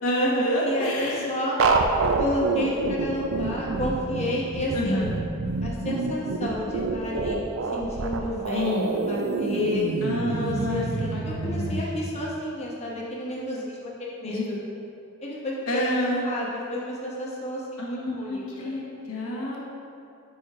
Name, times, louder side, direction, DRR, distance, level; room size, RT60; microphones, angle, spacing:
voice 1, 0.0-1.2 4.7-5.1 8.5-8.9 10.0-11.8 14.2-14.5 15.7-16.2 17.8-19.6, equal, 70° left, -4 dB, 1.1 m, -28 dB
voice 2, 0.6-1.6 2.2-5.1 5.6-9.9 10.3-14.6 15.2-18.7, left 1 dB, 30° left, -4 dB, 0.9 m, -31 dB
sound 1, 1.6-11.8, right 3 dB, 60° right, 0.4 m, -27 dB
4.6 x 4.4 x 4.8 m, 2.6 s
head